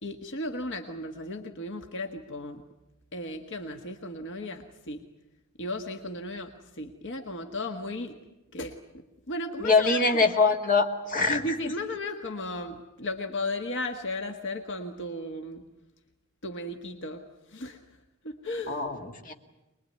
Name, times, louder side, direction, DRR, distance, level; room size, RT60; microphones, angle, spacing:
voice 1, 0.0-2.6 3.1-5.0 5.6-8.1 8.5-10.3 11.3-15.6 16.4-17.2 17.5-17.8 18.2-18.8, left 1 dB, 60° left, 5 dB, 1.6 m, -35 dB
voice 2, 9.6-11.4 18.7-19.3, left 4 dB, 40° left, 3 dB, 2.0 m, -23 dB
24.0 x 21.0 x 9.5 m, 0.97 s
head